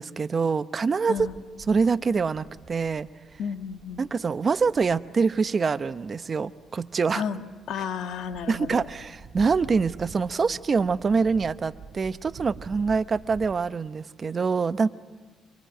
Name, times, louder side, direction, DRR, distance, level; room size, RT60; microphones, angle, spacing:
voice 1, 0.0-1.2 1.7-3.1 4.0-7.2 8.5-14.9, right 5 dB, 40° right, 13 dB, 0.8 m, -25 dB
sound 1, 1.1-13.5, right 5 dB, 60° right, 2.0 m, -48 dB
voice 2, 3.4-4.0 7.1-7.4 7.7-8.9, left 7 dB, 80° left, 7 dB, 1.6 m, -32 dB
26.0 x 24.5 x 9.2 m, 1.5 s
cardioid pair, 90°, 0 cm